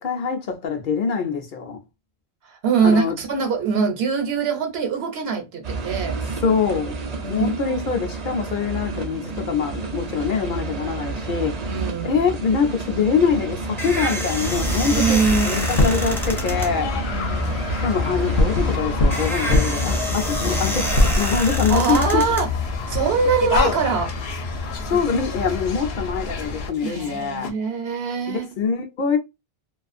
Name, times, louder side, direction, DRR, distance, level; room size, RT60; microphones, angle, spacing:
voice 1, 0.0-1.8 2.8-3.1 6.4-7.0 7.2-11.6 12.0-17.1 17.8-22.2 24.9-27.5 28.3-29.2, left 5 dB, 60° left, 0.6 m, -24 dB
voice 2, 2.5-6.2 7.2-7.8 11.7-12.2 14.9-15.8 16.9-17.6 21.7-22.5 22.9-24.1 26.8-28.4, right 5 dB, 75° right, 0.9 m, -23 dB
sound 1, 5.6-21.1, right 4 dB, 50° right, 0.6 m, -30 dB
sound 2, 13.2-23.1, equal, 5° left, 0.3 m, -30 dB
sound 3, 14.4-27.5, left 3 dB, 90° left, 0.9 m, -25 dB
2.4 x 2.3 x 2.4 m
omnidirectional pair, 1.0 m